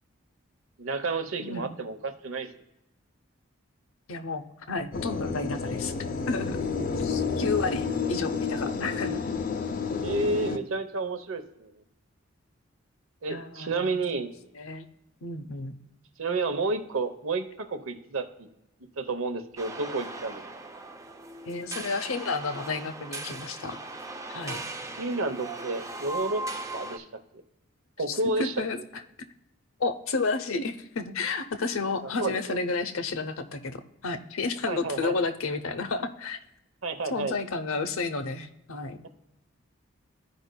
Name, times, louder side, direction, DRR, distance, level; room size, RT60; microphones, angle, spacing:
voice 1, 0.8-2.5 9.9-11.7 13.2-14.3 16.2-18.5 19.0-20.4 25.0-26.4 26.7-27.0 28.0-28.5 32.0-32.6 34.7-35.2 36.8-37.4, right 3 dB, 75° right, 8 dB, 0.8 m, -30 dB
voice 2, 1.4-1.8 4.1-5.9 6.3-6.6 7.0-9.2 13.3-14.0 14.6-14.9 15.2-15.7 21.5-23.8 24.3-24.6 28.1-29.0 29.8-36.4 37.1-39.0, left 3 dB, 80° left, 8 dB, 0.7 m, -31 dB
sound 1, 4.9-10.6, left 5 dB, 40° left, 0.5 m, -30 dB
sound 2, 19.6-27.0, right 2 dB, 15° right, 0.4 m, -38 dB
14.0 x 5.1 x 2.2 m, 0.89 s
head